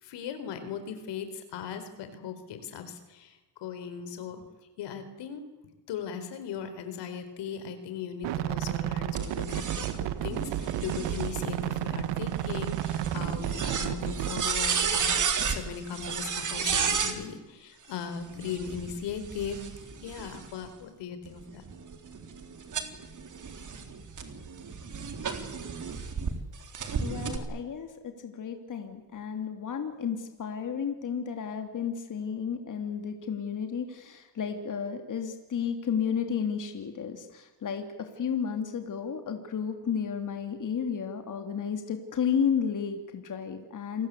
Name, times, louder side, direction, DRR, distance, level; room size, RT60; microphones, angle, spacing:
voice 1, 0.0-4.4 4.8-5.4 5.9-19.6 20.0-21.6, left 7 dB, 80° left, 9 dB, 4.4 m, -38 dB
sound 1, 8.2-14.4, right 13 dB, 85° right, 1.7 m, -32 dB
sound 2, 9.2-17.2 18.3-20.7 21.3-26.3 26.7-27.4, right 6 dB, 45° right, 3.8 m, -33 dB
voice 2, 27.0-44.1, left 7 dB, 45° left, 6 dB, 3.0 m, -32 dB
28.5 x 20.5 x 8.5 m, 1.1 s
cardioid pair, 100°, 42 cm